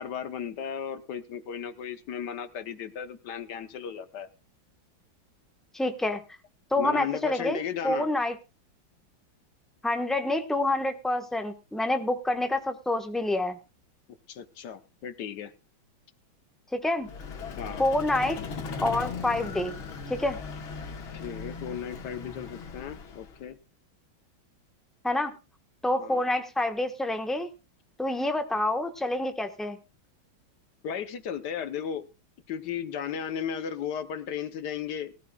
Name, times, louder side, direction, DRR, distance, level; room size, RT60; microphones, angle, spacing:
voice 1, 0.0-4.3 6.8-8.1 14.3-15.5 17.6-17.8 21.1-23.6 26.0-26.2 30.8-32.1 32.5-35.2, left 8 dB, 65° left, 11 dB, 1.4 m, -35 dB
voice 2, 5.7-6.2 6.7-7.6 7.8-8.3 9.8-13.6 16.7-17.1 17.8-18.4 18.8-19.8 20.1-20.4 25.0-25.3 25.8-27.5 28.0-29.8, left 2 dB, ahead, 6 dB, 0.8 m, -27 dB
Vehicle, 17.0-23.5, left 5 dB, 80° left, 2.3 m, -38 dB
19.5 x 13.5 x 2.3 m, 0.29 s
omnidirectional pair, 2.2 m